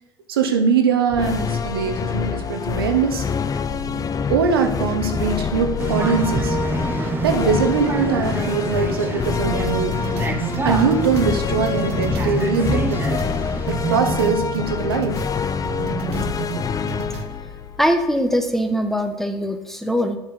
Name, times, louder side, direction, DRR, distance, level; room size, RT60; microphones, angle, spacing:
voice 1, 0.3-3.2 4.3-6.6 7.2-10.0 10.6-13.2 13.7-15.2, right 5 dB, 90° right, 5 dB, 1.1 m, -22 dB
sound 1, 1.1-18.6, left 6 dB, 30° left, 0.6 m, -26 dB
sound 2, 5.8-14.0, right 2 dB, 15° right, 1.1 m, -27 dB
sound 3, 9.7-13.4 13.7-15.3 15.6-17.3, right 10 dB, 60° right, 0.8 m, -31 dB
voice 2, 17.8-20.2, equal, 5° left, 7 dB, 1.1 m, -21 dB
7.1 x 5.8 x 5.7 m, 1.1 s
hypercardioid pair, 75°, 12 cm